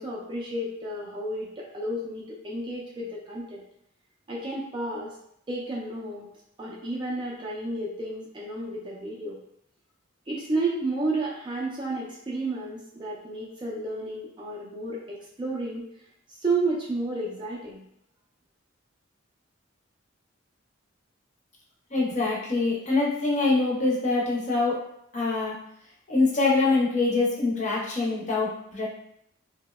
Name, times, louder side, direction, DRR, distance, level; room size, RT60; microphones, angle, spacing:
voice 1, 0.0-3.6 4.3-5.1 5.5-6.3 6.6-9.4 10.3-15.9 16.3-17.8, right 2 dB, 25° right, -4 dB, 0.3 m, -31 dB
voice 2, 21.9-24.8 25.1-25.5 26.1-28.9, left 3 dB, 35° left, -4 dB, 0.5 m, -24 dB
2.7 x 2.0 x 2.2 m, 0.73 s
head